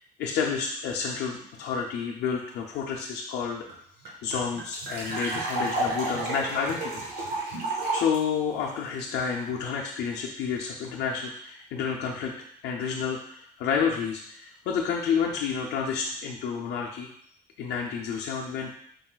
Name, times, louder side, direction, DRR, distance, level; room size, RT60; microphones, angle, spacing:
voice 1, 0.2-3.7 4.1-7.4 7.9-12.3 12.6-17.1 17.6-18.7, left 6 dB, 85° left, -1 dB, 0.5 m, -30 dB
sound 1, 3.4-3.5 3.7-3.8 4.0-8.2, right 2 dB, 80° right, 1.4 m, -31 dB
4.8 x 3.8 x 2.3 m, 0.67 s
cardioid pair, 110°, 17 cm